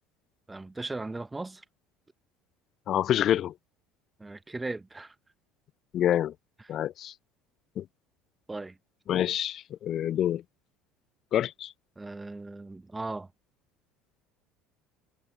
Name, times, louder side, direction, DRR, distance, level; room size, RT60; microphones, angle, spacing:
voice 1, 0.5-1.6 4.2-5.1 8.5-8.8 12.0-13.3, right 2 dB, 15° right, 1.4 m, -37 dB
voice 2, 2.9-3.5 5.9-6.3 6.7-7.1 7.8-7.9 9.1-10.4 11.3-11.7, left 11 dB, 50° left, 0.5 m, -27 dB
figure-of-eight pair, 65°, 0 cm